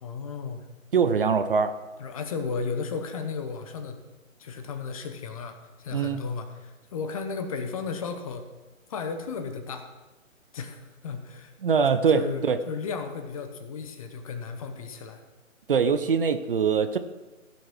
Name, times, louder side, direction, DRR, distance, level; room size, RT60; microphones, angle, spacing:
voice 1, 0.0-0.7 2.0-4.0 4.4-8.4 8.9-9.9 10.5-11.5 12.1-15.2, left 5 dB, 25° left, 7 dB, 1.0 m, -34 dB
voice 2, 0.9-1.7 5.9-6.2 11.6-12.6 15.7-17.0, right 6 dB, 40° right, 10 dB, 0.7 m, -23 dB
15.5 x 6.2 x 6.0 m, 1.2 s
figure-of-eight pair, 145°, 41 cm